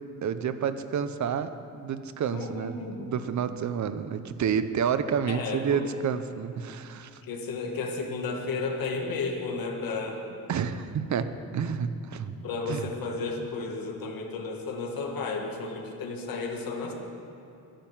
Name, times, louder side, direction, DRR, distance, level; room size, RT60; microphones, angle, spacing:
voice 1, 0.2-1.5 1.8-7.2 10.5-12.4 12.7-12.8, right 7 dB, 55° right, 11 dB, 0.8 m, -29 dB
voice 2, 2.3-3.1 5.3-5.8 7.3-10.2 12.4-16.9, left 3 dB, 75° left, 1 dB, 1.8 m, -33 dB
12.0 x 10.0 x 7.3 m, 2.7 s
cardioid pair, 145°, 35 cm